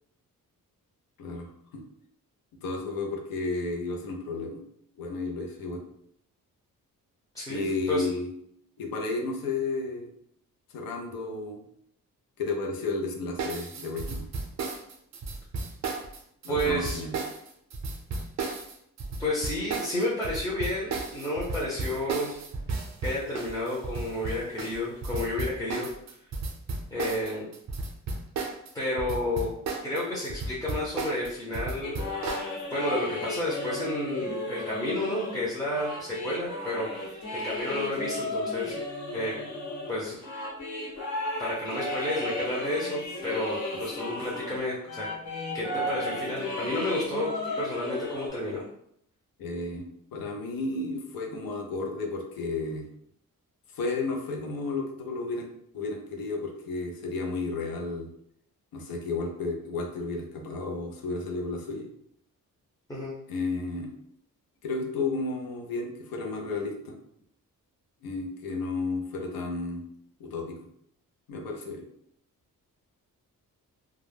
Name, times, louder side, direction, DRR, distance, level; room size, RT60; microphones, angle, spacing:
voice 1, 1.2-1.8 2.6-4.6 5.0-5.8 7.5-8.3 8.8-10.1 10.7-11.6 12.4-14.3 16.4-17.1 49.4-52.8 53.7-55.5 55.7-58.1 58.7-61.9 63.3-63.9 64.6-67.0 68.0-69.9 70.2-70.6 71.3-71.8, left 3 dB, 90° left, 2 dB, 0.6 m, -32 dB
voice 2, 7.3-8.1 16.5-17.0 19.2-22.3 23.0-25.9 26.9-27.5 28.7-29.5 29.8-32.0 32.7-38.8 39.1-39.4 39.9-40.2 41.4-45.1 45.5-48.6 62.9-63.1, left 1 dB, 10° left, -7 dB, 0.6 m, -31 dB
sound 1, 13.4-28.7 29.0-32.5, right 3 dB, 50° right, 0.5 m, -34 dB
sound 2, 31.8-44.6 44.9-48.3, left 1 dB, 55° left, 0.8 m, -34 dB
2.3 x 2.0 x 3.3 m, 0.70 s
cardioid pair, 110°, 34 cm